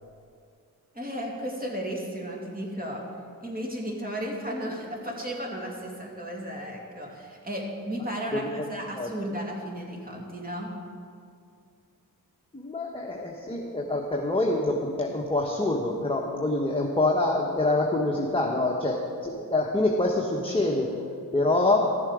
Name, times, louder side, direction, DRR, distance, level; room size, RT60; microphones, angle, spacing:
voice 1, 0.9-3.0 3.4-10.7, equal, 25° right, -1 dB, 2.4 m, -34 dB
voice 2, 8.3-8.6 8.9-9.1 12.5-22.0, left 2 dB, 15° left, -1 dB, 1.2 m, -26 dB
14.0 x 7.2 x 5.0 m, 2.4 s
cardioid pair, 60°, 38 cm